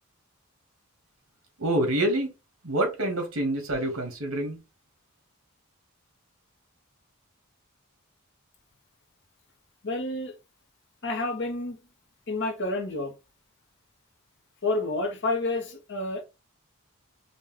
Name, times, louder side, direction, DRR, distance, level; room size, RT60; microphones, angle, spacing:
voice 1, 1.6-2.3 2.6-4.6, right 1 dB, 70° right, 1.9 m, -27 dB
voice 2, 9.8-10.3 11.0-11.8 12.3-13.1 14.6-16.2, left 2 dB, 55° left, 1.2 m, -29 dB
5.2 x 2.6 x 3.5 m
head